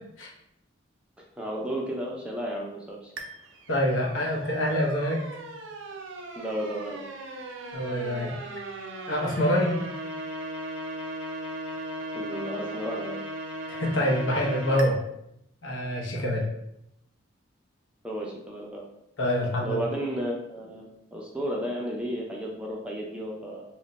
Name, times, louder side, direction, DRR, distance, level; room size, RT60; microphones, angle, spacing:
voice 1, 1.4-3.1 6.4-7.0 12.1-13.2 18.0-18.9 19.6-23.6, equal, 5° right, -3 dB, 0.4 m, -33 dB
sound 1, 3.2-14.9, right 1 dB, 75° right, 0.5 m, -38 dB
voice 2, 3.7-5.2 7.7-8.3 9.1-9.8 13.7-15.0 15.6-16.5 19.2-19.8, equal, 75° left, -2 dB, 0.8 m, -26 dB
3.1 x 2.2 x 3.9 m, 0.80 s
head